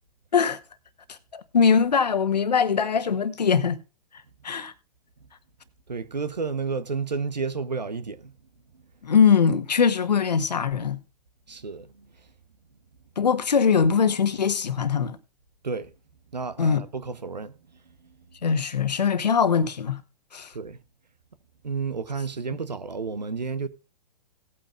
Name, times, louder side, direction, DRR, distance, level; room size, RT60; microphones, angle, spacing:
voice 1, 1.1-3.8 4.4-4.7 9.0-11.0 13.2-15.2 16.6-16.8 18.4-20.0 20.3-20.5, left 6 dB, 80° left, 1.1 m, -22 dB
voice 2, 5.9-8.3 11.5-12.1 15.6-15.9 16.3-17.5 20.5-20.8 21.6-23.7, right 5 dB, 90° right, 1.0 m, -31 dB
17.5 x 8.7 x 2.4 m
figure-of-eight pair, 110°, 21 cm